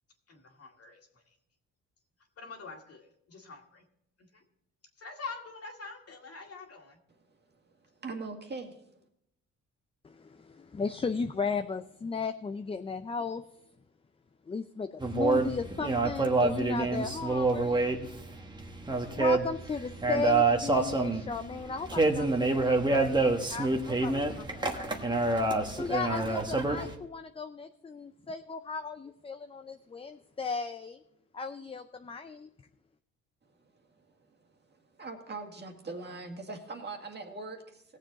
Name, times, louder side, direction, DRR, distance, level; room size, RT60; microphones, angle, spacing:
voice 1, 0.3-1.1 2.4-3.8 4.3-4.4 5.0-7.0, left 4 dB, 50° left, 2 dB, 2.2 m, -45 dB
voice 2, 8.0-8.8 33.9-34.1 34.7-37.8, right 3 dB, 35° right, 3 dB, 1.9 m, -41 dB
voice 3, 10.0-13.4 14.5-17.9 19.1-25.4 25.8-31.0 31.3-32.5, left 4 dB, 20° left, 8 dB, 0.5 m, -36 dB
sound 1, 15.0-26.9, right 3 dB, 15° right, 1.2 m, -27 dB
17.5 x 7.4 x 3.9 m, 0.77 s
cardioid pair, 90°, 30 cm